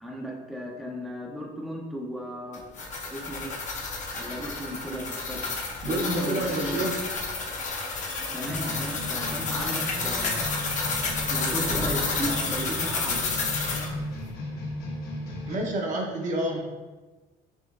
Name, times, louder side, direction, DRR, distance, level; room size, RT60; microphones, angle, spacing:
voice 1, 0.0-2.6 3.1-3.6 4.2-5.5 5.8-6.9 8.3-10.4 11.3-13.2, equal, ahead, -2 dB, 0.6 m, -35 dB
sound 1, 2.5-13.9, left 3 dB, 45° left, 0.9 m, -30 dB
voice 2, 5.8-6.9 15.5-16.6, right 1 dB, 50° right, 0 dB, 0.9 m, -28 dB
sound 2, 8.4-15.6, left 1 dB, 70° left, 1.0 m, -35 dB
5.1 x 3.0 x 2.5 m, 1.2 s
cardioid pair, 110°, 17 cm